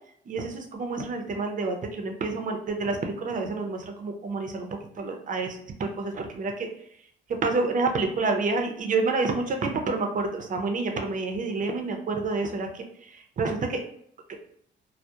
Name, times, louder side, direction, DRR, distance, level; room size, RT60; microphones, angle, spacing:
voice 1, 0.3-4.7 5.0-6.7 7.4-12.8 13.4-13.8, right 3 dB, 40° right, 4 dB, 0.5 m, -28 dB
2.2 x 2.0 x 2.8 m, 0.68 s
cardioid pair, 90°, 20 cm